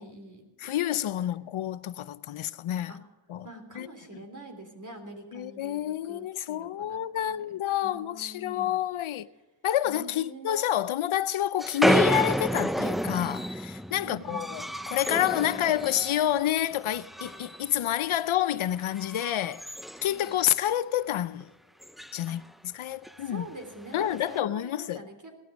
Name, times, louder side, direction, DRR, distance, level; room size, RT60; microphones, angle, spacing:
voice 1, 0.0-0.7 1.2-1.3 2.9-3.0 3.4-8.8 9.8-10.6 14.0-14.5 17.7-17.8 20.1-20.4 22.3-22.4 23.2-25.4, right 2 dB, 40° right, 3.4 m, -45 dB
voice 2, 0.6-2.9 3.3-3.5 3.8-3.9 5.3-9.3 9.6-19.6 20.0-21.5 22.1-22.4 22.7-23.5 23.9-25.0, left 11 dB, 85° left, 0.6 m, -28 dB
sound 1, 11.6-16.4 16.7-17.7 18.0-18.3 18.8-20.7 21.1-21.2 21.4-21.5 21.8-22.2 23.0-23.2 24.0-24.4, equal, ahead, 0.4 m, -30 dB
17.0 x 12.5 x 5.1 m
wide cardioid pair, 80°, 47 cm